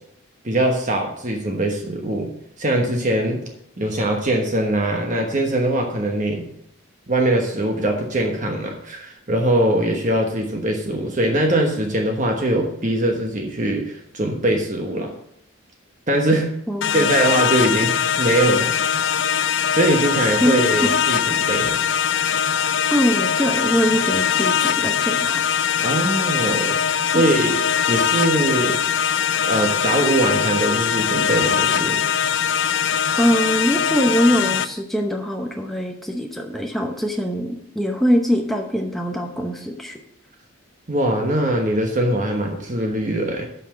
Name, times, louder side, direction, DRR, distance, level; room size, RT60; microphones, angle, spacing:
voice 1, 0.4-2.3 2.6-3.4 3.8-6.5 7.1-15.1 16.1-16.6 16.9-19.0 19.7-21.8 25.8-26.8 27.1-27.6 27.9-28.8 29.5-32.0 40.9-43.5, right 1 dB, 35° right, 2 dB, 1.2 m, -22 dB
voice 2, 16.7-17.1 20.4-20.5 20.8-20.9 22.9-25.4 27.1-27.2 33.2-40.0, equal, ahead, 2 dB, 0.8 m, -22 dB
sound 1, 16.8-34.7, left 8 dB, 60° left, 0.5 m, -21 dB
8.1 x 5.8 x 7.3 m, 0.72 s
head